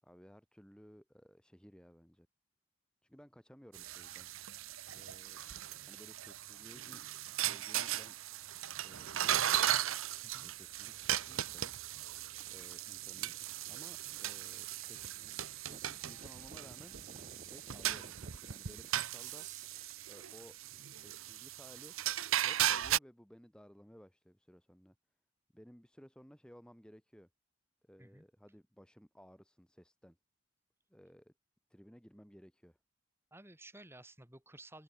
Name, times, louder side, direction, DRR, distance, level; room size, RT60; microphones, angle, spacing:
voice 1, 0.0-2.3 3.0-4.5 4.9-5.4 5.8-7.0 7.3-8.4 8.8-9.8 10.4-11.7 12.5-13.3 13.7-16.9 17.4-18.1 18.5-19.5 20.0-22.0 22.4-25.0 25.5-27.3 27.8-30.2 30.9-31.3 31.7-32.8, equal, 5° left, 1.9 m, -58 dB
sound 1, 3.7-23.0, right 11 dB, 75° right, 0.9 m, -37 dB
sound 2, 10.1-20.0, right 5 dB, 35° right, 1.3 m, -58 dB
voice 2, 33.3-34.8, right 2 dB, 10° right, 4.4 m, -54 dB
head